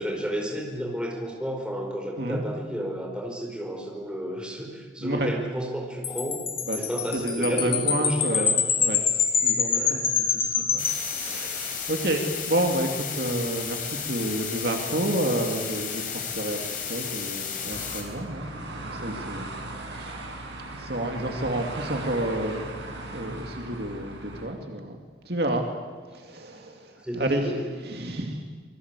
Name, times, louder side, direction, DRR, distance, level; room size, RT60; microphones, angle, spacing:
voice 1, 0.0-6.4 6.8-8.5 9.7-10.1 27.0-27.7, equal, 5° right, 0 dB, 5.0 m, -32 dB
Wind chime, 6.0-11.7, left 6 dB, 30° left, 2.4 m, -26 dB
voice 2, 6.7-9.0 9.3-12.2 12.5-16.6 16.9-18.5 18.8-20.1 20.7-22.7 23.1-25.0 25.2-25.6 26.1-27.5 27.8-28.4, right 1 dB, 55° right, 3 dB, 2.6 m, -30 dB
sound 1, 10.8-18.0, left 7 dB, 45° left, 4.3 m, -33 dB
sound 2, 17.7-24.4, right 2 dB, 75° right, 5.6 m, -38 dB
26.5 x 21.5 x 8.4 m, 1.5 s
head